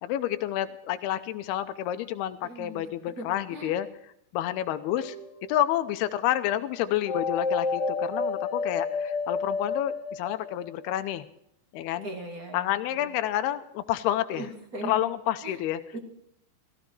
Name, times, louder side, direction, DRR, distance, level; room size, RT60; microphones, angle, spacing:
voice 1, 0.0-3.9 4.3-5.2 5.5-11.3 11.7-12.1 12.5-14.5 14.8-15.8, left 12 dB, 80° left, 10 dB, 2.6 m, -29 dB
voice 2, 2.4-3.7 12.0-12.7 14.3-14.9 15.4-15.5 15.9-16.0, right 1 dB, 30° right, 3 dB, 1.7 m, -39 dB
sound 1, 4.9-5.6 7.1-10.9, left 4 dB, 60° left, 1.0 m, -30 dB
16.0 x 15.5 x 4.7 m, 0.74 s
omnidirectional pair, 4.9 m